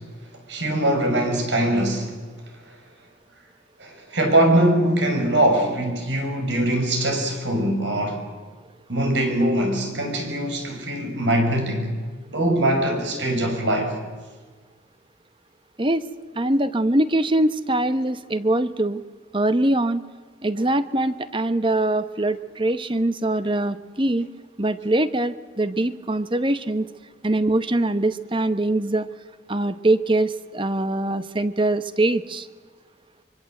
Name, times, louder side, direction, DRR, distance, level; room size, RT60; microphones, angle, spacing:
voice 1, 0.5-2.1 3.8-8.3 8.9-11.9 12.3-13.9, right 1 dB, 85° right, 4 dB, 6.2 m, -22 dB
voice 2, 16.3-19.0 19.3-20.0 20.4-24.3 24.6-26.9 27.2-29.1 29.5-32.5, right 1 dB, 30° right, 12 dB, 1.0 m, -23 dB
24.5 x 24.0 x 7.9 m, 1.5 s
head